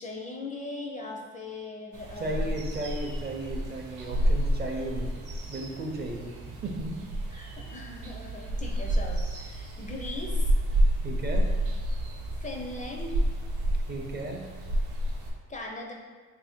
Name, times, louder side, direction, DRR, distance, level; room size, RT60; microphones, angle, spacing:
voice 1, 0.0-2.6 7.3-10.5 12.4-13.2 15.5-15.9, left 2 dB, 25° left, 1 dB, 0.4 m, -39 dB
sound 1, 1.9-15.3, equal, 85° right, 0.7 m, -30 dB
voice 2, 2.2-6.3 6.6-7.0 11.0-11.4 13.9-14.4, right 2 dB, 35° right, 1 dB, 0.5 m, -35 dB
3.2 x 2.7 x 3.5 m, 1.5 s
cardioid pair, 90°, 30 cm